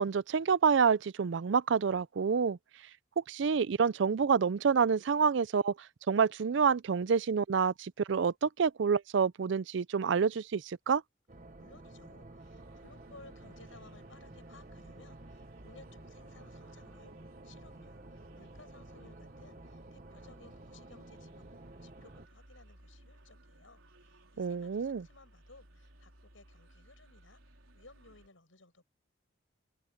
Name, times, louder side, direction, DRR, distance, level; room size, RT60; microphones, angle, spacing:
voice 1, 0.0-2.6 3.2-5.7 6.1-11.0 24.4-25.0, right 6 dB, 65° right, 0.4 m, -28 dB
sound 1, 11.3-22.3, right 2 dB, 40° right, 1.1 m, -51 dB
voice 2, 11.6-17.1 17.4-21.5 21.8-28.8, left 3 dB, 80° left, 6.2 m, -59 dB
sound 2, 12.4-28.3, right 1 dB, 85° right, 4.5 m, -60 dB
open air
head